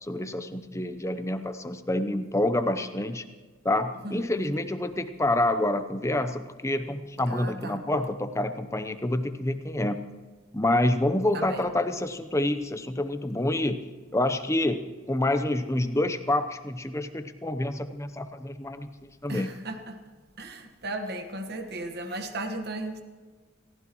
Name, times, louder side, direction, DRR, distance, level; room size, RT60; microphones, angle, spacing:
voice 1, 0.0-3.2 3.6-10.0 10.5-13.8 14.1-14.8 15.1-19.5, left 1 dB, 15° left, 9 dB, 0.8 m, -27 dB
voice 2, 7.3-7.8 11.3-11.7 19.3-20.0 20.4-23.0, right 1 dB, 50° right, 6 dB, 1.4 m, -35 dB
28.0 x 15.5 x 3.1 m, 1.4 s
head